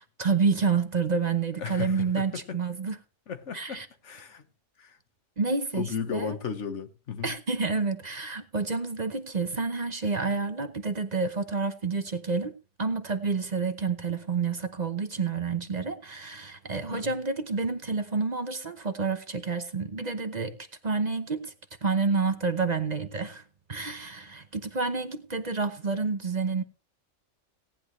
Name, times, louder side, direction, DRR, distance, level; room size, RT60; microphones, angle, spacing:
voice 1, 0.2-3.0 3.5-3.9 5.4-6.4 7.2-12.5 12.8-20.6 20.8-21.5 21.8-23.4 23.7-26.6, right 4 dB, 40° right, 0.9 m, -29 dB
voice 2, 1.6-2.6 3.3-4.4 4.8-5.0 5.7-7.3 16.7-17.1, left 7 dB, 75° left, 1.4 m, -35 dB
17.5 x 10.0 x 3.1 m
omnidirectional pair, 1.2 m